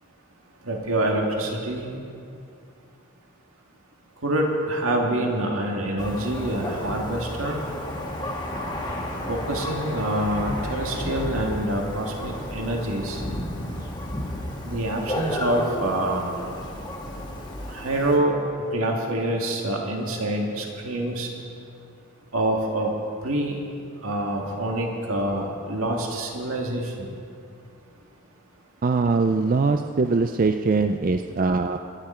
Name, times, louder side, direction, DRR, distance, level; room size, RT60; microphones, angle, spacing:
voice 1, 0.7-1.9 4.2-7.6 9.3-13.2 14.6-16.3 17.7-18.4 18.7-21.3 22.3-22.9 23.2-23.6 24.0-27.1, right 1 dB, 70° right, 0 dB, 1.9 m, -26 dB
Thunder, 6.0-18.2, left 1 dB, 20° left, 1.4 m, -32 dB
voice 2, 28.8-31.8, right 4 dB, 40° right, 7 dB, 0.4 m, -22 dB
24.0 x 9.8 x 4.4 m, 2.5 s
head